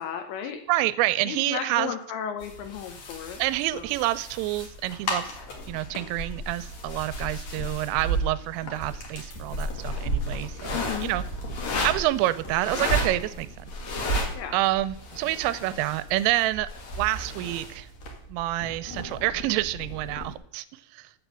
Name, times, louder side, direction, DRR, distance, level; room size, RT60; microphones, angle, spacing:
voice 1, 0.0-0.6 1.3-3.4 3.7-3.9 10.7-11.1 14.3-14.6, left 9 dB, 80° left, 7 dB, 2.7 m, -34 dB
voice 2, 0.7-1.9 3.4-5.3 5.7-11.2 11.8-13.7 14.5-16.7 17.0-17.9 18.3-20.7 20.9-21.1, right 16 dB, 85° right, 14 dB, 3.2 m, -27 dB
sound 1, 2.4-20.3, equal, 60° left, 1.8 m, -33 dB
sound 2, 8.9-16.3, right 1 dB, 30° right, 3.6 m, -55 dB
7.9 x 7.2 x 7.9 m, 0.66 s
omnidirectional pair, 5.8 m